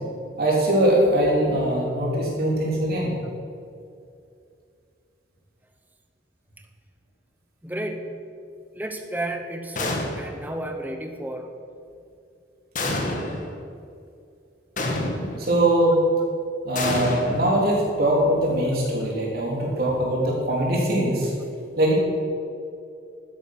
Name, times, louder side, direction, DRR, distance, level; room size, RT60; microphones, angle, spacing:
voice 1, 0.4-3.2 15.4-16.0 16.6-21.3 21.8-22.0, right 1 dB, 55° right, -3 dB, 3.7 m, -22 dB
voice 2, 7.6-8.1 8.7-11.5, right 1 dB, 10° right, 5 dB, 1.0 m, -32 dB
sound 1, 9.8-10.5 12.8-13.5 14.8-15.5 16.8-18.0, left 2 dB, 45° left, 1.6 m, -28 dB
12.5 x 10.0 x 6.2 m, 2.5 s
head